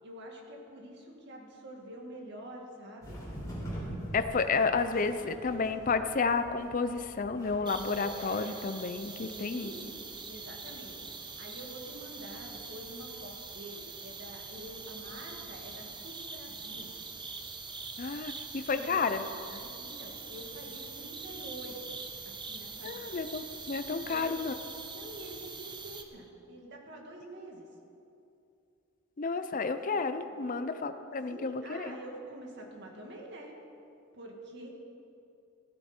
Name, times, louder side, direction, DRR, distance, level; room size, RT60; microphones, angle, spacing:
voice 1, 0.0-3.2 9.2-16.9 18.7-19.0 19.6-22.0 22.2-23.1 24.0-24.3 24.9-27.7 30.3-30.7 31.3-33.5 34.1-34.7, right 1 dB, 55° right, 0 dB, 2.1 m, -47 dB
sound 1, 3.0-8.5, equal, 15° left, 3.7 m, -43 dB
voice 2, 4.1-9.7 18.0-19.6 22.8-24.5 29.2-32.0, left 4 dB, 40° left, 10 dB, 0.5 m, -31 dB
sound 2, 7.7-26.0, right 4 dB, 20° right, 0.8 m, -44 dB
15.0 x 12.5 x 4.4 m, 2.7 s
head